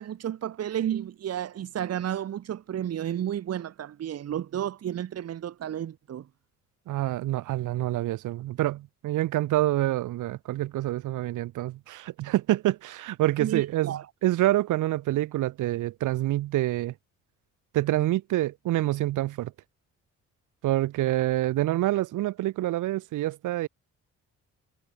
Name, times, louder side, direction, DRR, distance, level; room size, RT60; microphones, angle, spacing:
voice 1, 0.0-6.3 13.4-14.1, right 10 dB, 55° right, 1.2 m, -32 dB
voice 2, 6.9-16.9 17.7-19.5 20.6-23.7, right 15 dB, 85° right, 2.1 m, -27 dB
cardioid pair, 90°, 30 cm